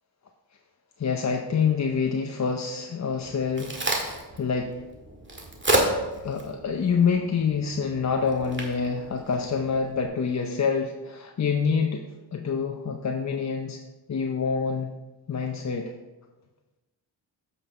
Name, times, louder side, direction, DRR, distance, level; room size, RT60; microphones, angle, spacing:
voice 1, 1.0-4.8 6.2-12.0 12.3-13.8 14.1-14.9 15.3-15.9, left 5 dB, 40° left, 3 dB, 0.7 m, -27 dB
Crack, 3.2-10.1, right 1 dB, 25° right, 1.9 m, -31 dB
8.0 x 5.4 x 4.2 m, 1.1 s
cardioid pair, 65°, 45 cm